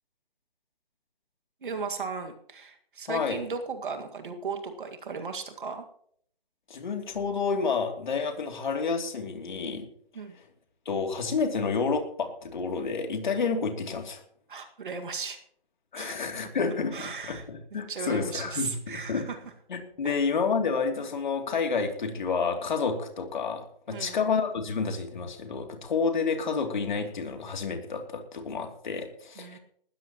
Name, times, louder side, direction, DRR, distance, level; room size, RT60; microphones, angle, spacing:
voice 1, 1.6-5.9 10.1-10.4 14.5-15.4 16.0-16.2 16.9-17.4 17.9-19.4 20.0-20.1 23.9-24.2 29.4-29.6, right 5 dB, 60° right, 6 dB, 1.9 m, -36 dB
voice 2, 3.1-3.4 6.7-9.9 10.8-14.2 15.9-19.2 19.7-29.6, left 5 dB, 55° left, 4 dB, 2.9 m, -29 dB
19.5 x 14.0 x 3.0 m, 0.64 s
hypercardioid pair, 165°, 29 cm